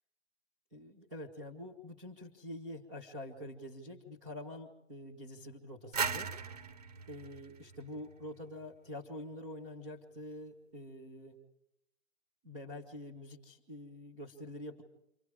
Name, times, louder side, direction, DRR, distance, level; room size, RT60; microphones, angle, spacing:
voice 1, 0.7-6.3 7.1-11.4 12.4-14.8, left 1 dB, ahead, -13 dB, 0.8 m, -46 dB
sound 1, 5.9-8.6, right 5 dB, 30° right, 0.8 m, -38 dB
29.0 x 25.5 x 4.9 m, 0.80 s
hypercardioid pair, 180°, 40 cm